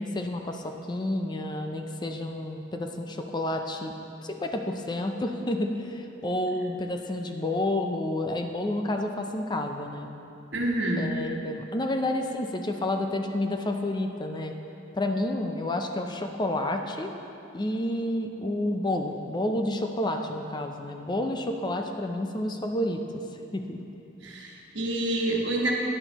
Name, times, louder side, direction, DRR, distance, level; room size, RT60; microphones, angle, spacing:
voice 1, 0.0-3.9 4.2-10.1 11.0-14.5 14.9-17.1 17.5-23.0 23.5-23.8, left 1 dB, 25° left, 4 dB, 0.5 m, -30 dB
voice 2, 10.5-11.1 24.2-25.7, right 1 dB, 65° right, -1 dB, 1.4 m, -27 dB
11.0 x 9.9 x 3.0 m, 2.8 s
head